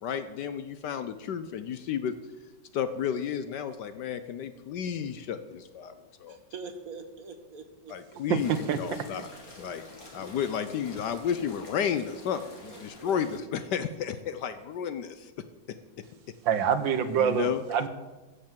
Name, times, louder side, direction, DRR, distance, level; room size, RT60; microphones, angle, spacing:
voice 1, 0.0-2.1 2.7-6.4 7.9-9.3 9.6-9.8 10.1-15.3 16.0-16.1 17.2-17.6, left 8 dB, 65° left, 11 dB, 1.2 m, -32 dB
voice 2, 6.3-7.9 12.6-13.2 14.2-14.3, right 4 dB, 50° right, 8 dB, 1.3 m, -44 dB
voice 3, 8.3-8.8 16.4-17.9, right 7 dB, 70° right, 11 dB, 1.6 m, -26 dB
sound 1, 8.4-13.4, left 2 dB, 45° left, 3.0 m, -49 dB
15.0 x 6.9 x 7.4 m, 1.2 s
omnidirectional pair, 2.2 m